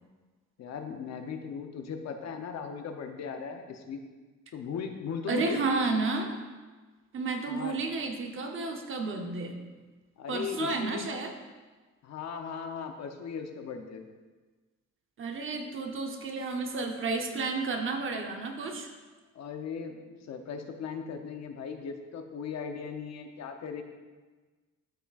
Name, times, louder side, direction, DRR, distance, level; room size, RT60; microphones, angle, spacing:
voice 1, 0.6-4.0 4.5-5.6 7.5-7.8 10.2-11.1 12.0-14.0 19.3-20.0 20.3-23.8, left 6 dB, 60° left, 5 dB, 0.8 m, -38 dB
voice 2, 5.3-6.3 7.1-9.6 10.3-11.3 15.2-18.9, right 3 dB, 45° right, 3 dB, 0.8 m, -31 dB
12.5 x 5.8 x 2.4 m, 1.3 s
cardioid pair, 170°, 30 cm